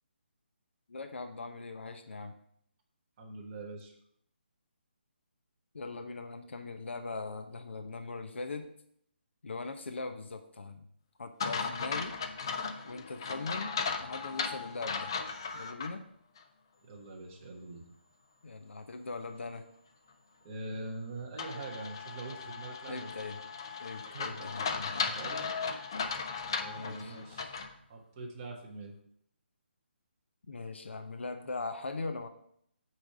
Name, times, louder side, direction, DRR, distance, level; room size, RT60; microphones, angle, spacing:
voice 1, 0.9-2.3 5.7-8.6 9.4-10.8 11.2-12.1 12.9-15.1 15.5-16.0 18.4-19.7 22.9-23.4 23.8-25.1 26.8-27.2 30.5-32.3, left 3 dB, 80° left, 7 dB, 0.8 m, -40 dB
voice 2, 3.2-3.9 16.8-17.8 20.4-23.1 24.1-24.5 25.0-25.8 26.6-27.6 27.9-28.9, right 2 dB, 20° right, -2 dB, 1.1 m, -43 dB
sound 1, 11.4-15.9 16.4-16.5 21.4-27.7, left 5 dB, 25° left, 0.4 m, -36 dB
8.6 x 3.3 x 6.5 m, 0.68 s
hypercardioid pair, 175°, 6 cm